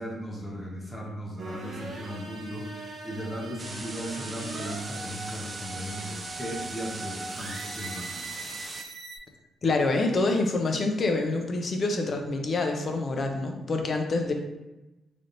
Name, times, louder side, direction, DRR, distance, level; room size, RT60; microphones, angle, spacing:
voice 1, 0.0-8.4, equal, 15° left, -2 dB, 0.9 m, -37 dB
sound 1, 1.4-9.2, right 2 dB, 50° right, 0.7 m, -40 dB
sound 2, 3.6-8.8, right 2 dB, 25° right, 0.4 m, -40 dB
voice 2, 9.6-14.3, left 3 dB, 40° left, 4 dB, 0.5 m, -26 dB
4.1 x 3.4 x 2.6 m, 1.0 s
cardioid pair, 130°, 0 cm